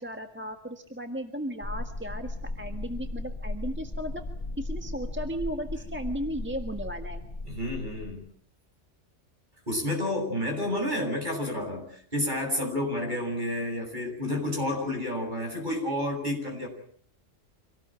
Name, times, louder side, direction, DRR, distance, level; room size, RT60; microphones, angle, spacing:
voice 1, 0.0-4.2 4.6-7.2, equal, 10° right, 5 dB, 1.6 m, -35 dB
sound 1, 1.6-8.1, left 2 dB, 25° left, 4.9 m, -36 dB
voice 2, 7.5-8.2 9.7-11.8 12.1-16.7, left 1 dB, 40° right, 2 dB, 7.9 m, -30 dB
26.5 x 18.5 x 9.1 m, 0.62 s
omnidirectional pair, 1.3 m